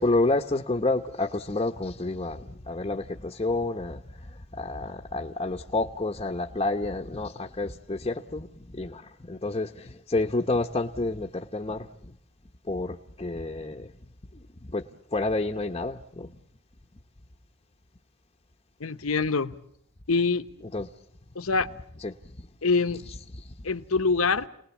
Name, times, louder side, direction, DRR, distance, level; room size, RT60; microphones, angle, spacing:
voice 1, 0.0-8.5 8.7-11.9 12.7-13.9 14.3-14.4 14.7-14.9 15.1-16.3 20.7-20.9 22.0-22.1 23.3-23.4, left 2 dB, 25° left, 0.9 m, -29 dB
voice 2, 18.8-19.5 20.1-20.5 21.3-21.7 22.6-23.0 23.6-24.5, left 4 dB, 75° left, 1.0 m, -24 dB
30.0 x 20.0 x 7.2 m
head